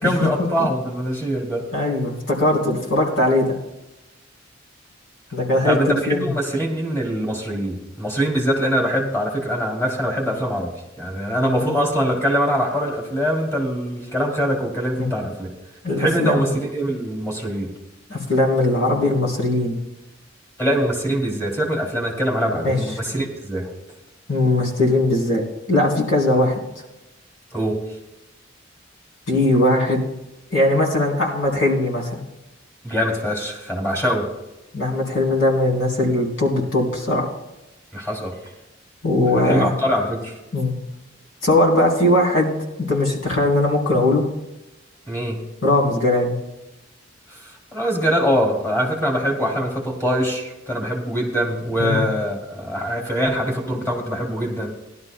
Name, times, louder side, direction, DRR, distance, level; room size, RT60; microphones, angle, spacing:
voice 1, 0.0-1.7 5.6-10.7 11.0-15.5 16.0-17.7 20.6-23.7 27.5-27.8 32.8-34.3 37.9-38.3 39.4-40.4 45.1-45.4 47.3-54.7, equal, 15° left, -2 dB, 2.8 m, -23 dB
voice 2, 1.7-3.5 5.3-5.8 6.1-6.3 15.0-15.1 15.8-16.4 18.1-19.8 22.5-22.8 24.3-25.4 25.7-26.6 29.3-30.0 30.5-32.2 34.7-37.3 39.0-39.7 40.5-40.7 41.4-42.5 42.8-44.2 45.6-46.4 51.8-52.1, left 1 dB, 80° left, -1 dB, 3.4 m, -19 dB
19.5 x 12.0 x 2.2 m, 0.95 s
head